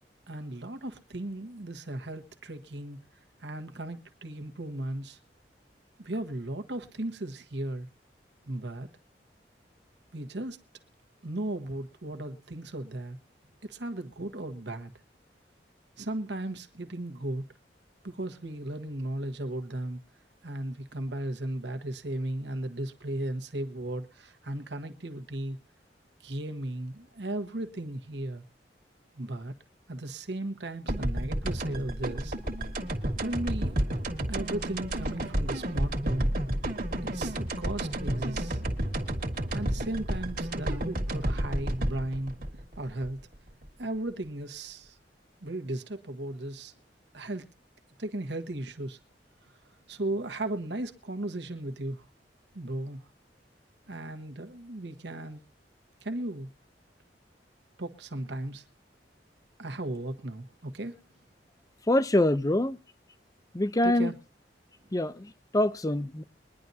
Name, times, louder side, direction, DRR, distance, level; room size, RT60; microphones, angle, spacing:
voice 1, 0.3-3.0 3.4-5.2 6.0-7.9 8.4-8.9 10.1-10.6 11.2-13.2 13.6-14.9 16.0-17.4 18.0-20.0 20.4-25.6 26.2-28.4 29.2-29.5 29.9-32.3 33.2-33.8 34.3-36.3 37.0-38.6 39.5-42.3 42.8-43.2 43.8-45.0 45.4-46.7 47.1-47.4 48.0-49.0 49.9-52.1 52.5-53.0 53.9-55.4 56.0-56.5 57.8-58.6 59.6-61.0 63.8-64.1, right 1 dB, 75° right, 1.4 m, -36 dB
sound 1, 30.9-43.7, right 1 dB, 50° right, 1.8 m, -31 dB
voice 2, 61.9-62.8 63.5-64.1 64.9-66.2, left 1 dB, 20° left, 0.6 m, -25 dB
22.5 x 10.5 x 2.7 m
head